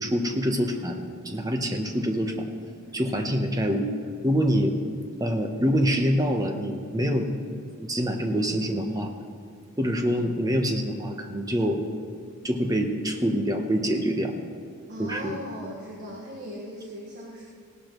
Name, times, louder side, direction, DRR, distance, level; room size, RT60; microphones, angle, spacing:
voice 1, 0.0-2.3 2.9-3.9 4.2-4.7 5.2-9.1 9.8-11.8 12.4-14.3 15.0-15.4, equal, 15° right, 4 dB, 1.0 m, -25 dB
voice 2, 2.8-3.6 14.9-17.4, equal, 45° right, -4 dB, 1.6 m, -39 dB
17.0 x 11.5 x 3.1 m, 2.3 s
head